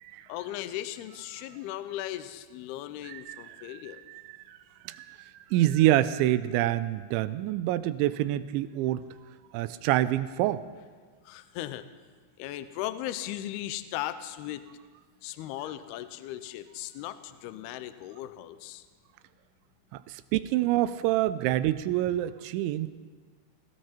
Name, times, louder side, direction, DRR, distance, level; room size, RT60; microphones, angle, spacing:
voice 1, 0.3-4.0 11.3-11.8 12.4-14.6 15.2-18.8, left 13 dB, 90° left, 11 dB, 2.3 m, -37 dB
voice 2, 3.0-4.6 4.8-9.0 9.5-10.6 19.9-22.9, right 14 dB, 85° right, 14 dB, 2.9 m, -27 dB
19.0 x 16.5 x 4.4 m, 1.5 s
omnidirectional pair, 5.3 m